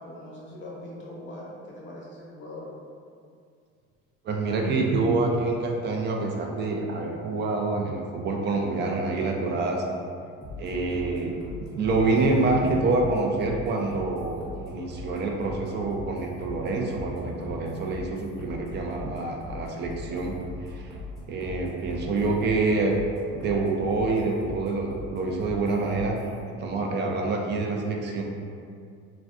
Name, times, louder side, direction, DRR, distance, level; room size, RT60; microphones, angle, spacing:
voice 1, 0.0-2.7, left 1 dB, 40° left, -5 dB, 0.6 m, -41 dB
voice 2, 4.2-9.8 10.6-11.4 11.7-20.3 20.7-20.9 21.3-23.0 23.3-26.2 26.6-28.2, right 3 dB, 35° right, 1 dB, 0.4 m, -26 dB
sound 1, 10.4-26.4, left 2 dB, ahead, 0.9 m, -41 dB
3.5 x 2.2 x 2.4 m, 2.3 s
cardioid pair, 115°, 30 cm